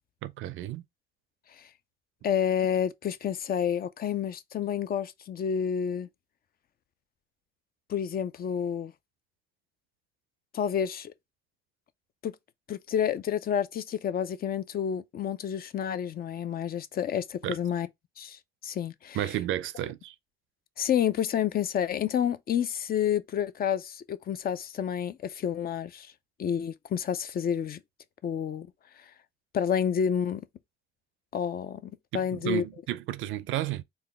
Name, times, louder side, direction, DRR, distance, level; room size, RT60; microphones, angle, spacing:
voice 1, 0.2-0.8 17.4-17.6 19.1-20.1 32.1-33.8, right 13 dB, 80° right, 0.4 m, -32 dB
voice 2, 2.2-6.1 7.9-8.9 10.5-11.1 12.2-12.3 12.7-17.9 18.2-19.2 20.8-26.1 26.4-27.8 28.2-28.7 29.5-30.4 31.3-32.6, left 8 dB, 50° left, 0.4 m, -29 dB
3.9 x 2.3 x 3.4 m
cardioid pair, 90°, 20 cm